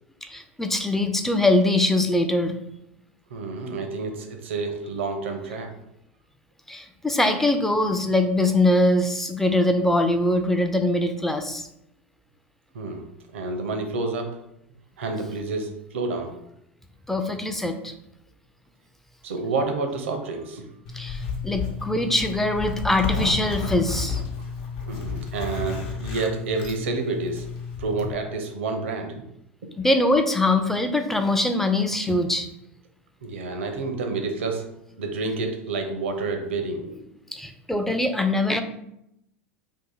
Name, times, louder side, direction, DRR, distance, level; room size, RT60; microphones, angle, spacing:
voice 1, 0.2-2.6 6.7-11.7 17.1-17.9 20.9-24.2 29.8-32.5 37.3-38.6, left 1 dB, 5° left, 7 dB, 0.4 m, -22 dB
voice 2, 3.3-5.7 12.7-13.1 13.3-14.4 15.0-16.4 19.2-20.6 24.8-27.4 27.8-29.2 33.2-34.7 35.0-37.1, right 3 dB, 70° right, 5 dB, 0.6 m, -29 dB
Zipper (clothing), 20.9-28.1, left 4 dB, 55° left, 0.8 m, -31 dB
2.7 x 2.6 x 3.7 m, 0.80 s
figure-of-eight pair, 85°, 7 cm